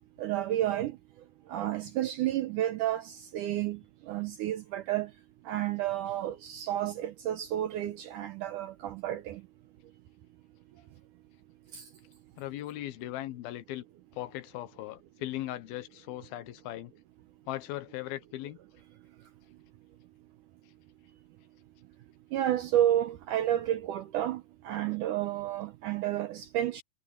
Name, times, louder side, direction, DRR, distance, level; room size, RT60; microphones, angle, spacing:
voice 1, 0.2-1.0 1.5-3.8 4.1-5.1 5.5-9.4 11.7-11.9 22.3-26.8, right 12 dB, 80° right, 1.9 m, -31 dB
voice 2, 12.4-13.8 14.2-16.9 17.5-18.6, left 14 dB, 75° left, 2.8 m, -38 dB
omnidirectional pair, 4.5 m